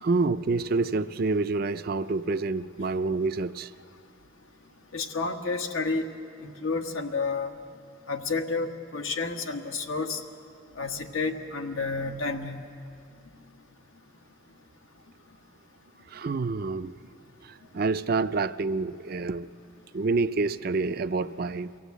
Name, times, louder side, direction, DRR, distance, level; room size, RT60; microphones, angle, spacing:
voice 1, 0.0-3.7 16.1-17.0 17.4-19.5 19.9-21.7, right 3 dB, 45° right, 12 dB, 0.4 m, -27 dB
voice 2, 4.9-6.1 6.4-7.5 8.1-10.2 10.8-12.6, left 4 dB, 85° left, 4 dB, 1.4 m, -30 dB
23.5 x 16.5 x 8.2 m, 2.5 s
head